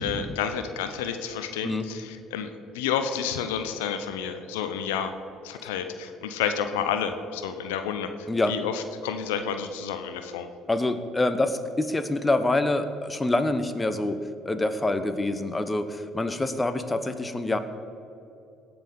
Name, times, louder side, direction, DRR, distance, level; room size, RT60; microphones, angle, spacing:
voice 1, 0.0-5.1 5.4-10.5, left 7 dB, 80° left, 9 dB, 0.7 m, -30 dB
voice 2, 10.7-14.2 14.4-17.6, left 2 dB, 20° left, 10 dB, 1.0 m, -26 dB
18.0 x 6.0 x 5.4 m, 2.8 s
hypercardioid pair, 60°, 0 cm